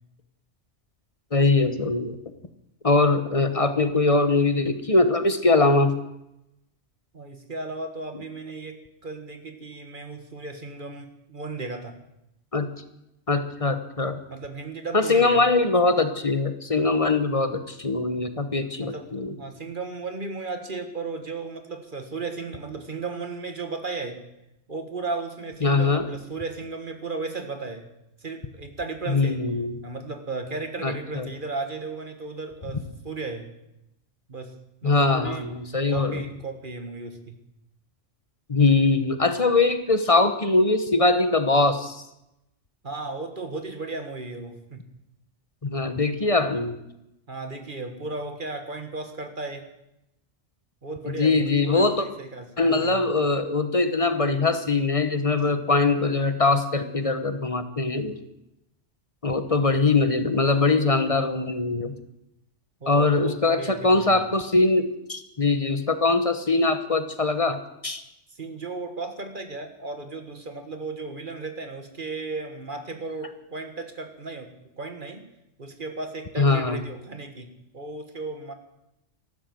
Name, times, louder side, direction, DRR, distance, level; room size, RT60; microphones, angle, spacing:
voice 1, 1.3-2.2 2.8-6.0 12.5-12.7 13.3-14.2 14.9-19.3 25.6-26.1 29.1-29.7 30.8-31.3 34.8-36.2 38.5-42.0 45.6-46.8 51.1-52.0 52.6-58.2 59.2-61.9 62.9-68.0 76.4-76.8, left 3 dB, 30° left, 9 dB, 1.2 m, -22 dB
voice 2, 7.1-12.0 14.3-15.8 18.8-19.1 19.4-24.2 24.7-27.8 28.2-29.4 29.8-33.5 34.3-34.6 34.8-35.5 35.9-37.4 42.8-44.9 47.3-49.7 50.8-53.0 62.8-64.2 68.3-75.2 75.6-78.5, right 3 dB, 45° right, 6 dB, 1.8 m, -35 dB
14.5 x 12.5 x 7.9 m, 0.87 s
omnidirectional pair, 1.2 m